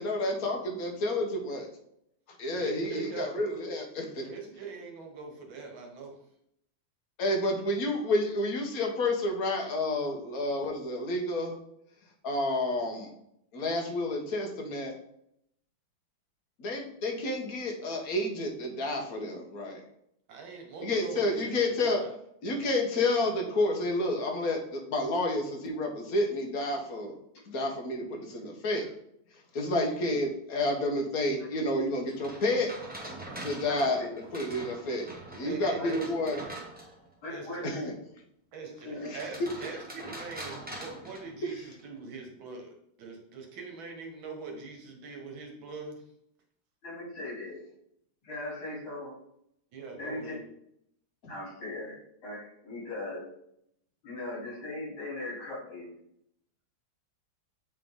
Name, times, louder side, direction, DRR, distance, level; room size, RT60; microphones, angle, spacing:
voice 1, 0.0-1.7 2.4-4.2 7.2-11.6 12.2-13.1 13.5-14.9 16.6-19.8 20.8-22.0 22.4-27.1 27.5-28.8 29.5-32.7 33.4-34.0 34.3-36.4 37.6-37.8 39.1-39.2, left 2 dB, 50° left, 1 dB, 1.4 m, -30 dB
voice 2, 2.6-3.4 4.2-6.1 20.3-21.6 21.8-22.1 35.4-36.4 37.3-37.7 38.5-46.0 49.7-50.4, right 4 dB, 70° right, 2 dB, 1.9 m, -42 dB
sound 1, 32.1-37.1 39.1-41.8, right 1 dB, 10° right, 0.5 m, -43 dB
voice 3, 33.4-34.1 35.8-35.9 37.2-37.9 38.8-39.1 46.8-47.6 48.2-49.2 50.0-50.3 51.3-53.3 54.0-55.9, left 2 dB, 80° left, -6 dB, 3.9 m, -39 dB
8.1 x 3.7 x 3.7 m, 0.75 s
omnidirectional pair, 2.3 m